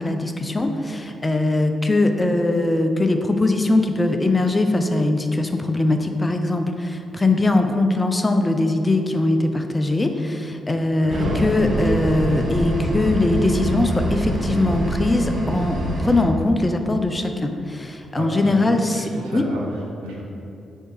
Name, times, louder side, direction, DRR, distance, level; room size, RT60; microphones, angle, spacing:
voice 1, 0.0-19.4, left 2 dB, 25° left, 6 dB, 0.6 m, -21 dB
voice 2, 11.0-11.5 17.9-18.5 18.9-20.2, right 1 dB, 80° right, -3 dB, 0.9 m, -32 dB
sound 1, 11.1-16.2, right 1 dB, 50° right, 1.0 m, -25 dB
4.8 x 4.5 x 4.7 m, 2.7 s
hypercardioid pair, 40°, 0 cm